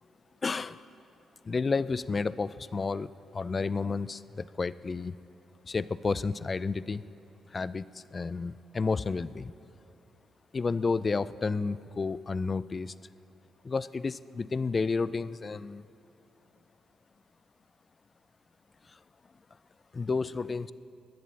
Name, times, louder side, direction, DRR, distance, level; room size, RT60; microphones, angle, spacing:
voice 1, 0.4-0.8 1.4-5.2 5.6-7.0 7.5-9.5 10.5-12.9 13.6-15.8 19.9-20.7, left 4 dB, 30° left, 16 dB, 0.3 m, -31 dB
22.5 x 10.5 x 4.1 m, 2.7 s
cardioid pair, 90°, 0 cm